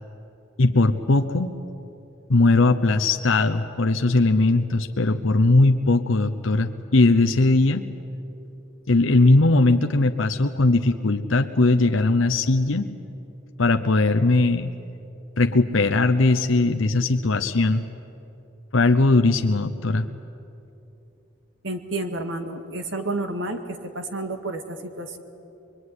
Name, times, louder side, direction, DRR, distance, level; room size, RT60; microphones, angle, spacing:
voice 1, 0.6-1.5 2.3-7.9 8.9-12.9 13.6-14.7 15.4-17.8 18.7-20.1, left 2 dB, 85° left, 7 dB, 0.9 m, -19 dB
voice 2, 21.6-23.6 23.9-25.2, right 2 dB, 70° right, 6 dB, 2.1 m, -30 dB
24.5 x 22.5 x 9.7 m, 2.9 s
head